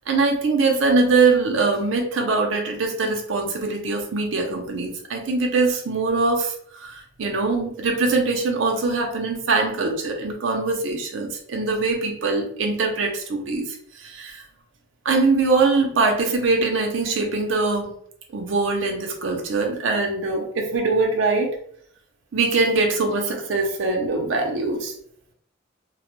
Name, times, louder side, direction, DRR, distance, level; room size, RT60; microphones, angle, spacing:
voice 1, 0.1-13.6 14.0-14.4 15.0-17.9 18.3-21.6 22.3-24.9, right 3 dB, 80° right, 2 dB, 0.5 m, -22 dB
2.0 x 2.0 x 3.0 m, 0.63 s
head